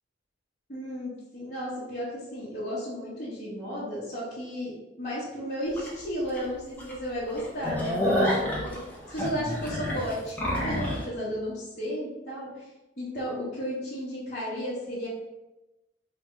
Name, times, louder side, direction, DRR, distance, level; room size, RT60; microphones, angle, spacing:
voice 1, 0.7-12.7 13.0-15.1, equal, 40° left, -10 dB, 1.1 m, -34 dB
sound 1, 5.8-5.9 6.4-6.5 6.8-6.9 7.3-11.0, equal, 10° left, 0.8 m, -28 dB
3.4 x 2.5 x 4.3 m, 1.0 s
head